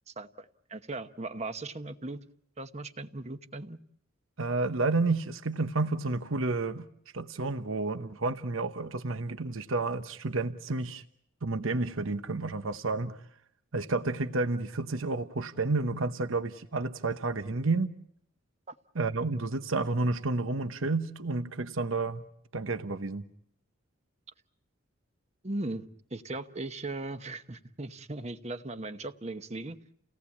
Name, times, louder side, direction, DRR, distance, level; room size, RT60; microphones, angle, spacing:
voice 1, 0.1-2.2 2.6-3.8 18.7-18.8 25.4-29.8, right 2 dB, 30° right, 9 dB, 1.0 m, -38 dB
voice 2, 4.4-6.9 7.1-11.0 11.4-13.2 13.7-17.9 18.9-22.2 22.5-23.2, right 3 dB, 75° right, 10 dB, 1.0 m, -30 dB
30.0 x 18.0 x 8.5 m, 0.73 s
head